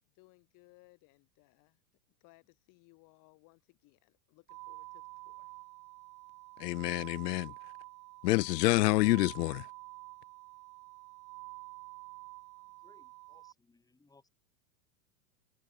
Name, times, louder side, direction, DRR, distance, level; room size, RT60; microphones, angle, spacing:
voice 1, 0.0-1.8 2.2-5.5, left 25 dB, 40° left, 6.6 m, -63 dB
sound 1, 4.5-13.5, right 27 dB, 40° right, 4.0 m, -49 dB
voice 2, 6.6-7.5 8.2-9.6, left 19 dB, 75° left, 0.8 m, -27 dB
voice 3, 12.6-14.3, left 3 dB, 5° left, 5.0 m, -66 dB
supercardioid pair, 160°, 49 cm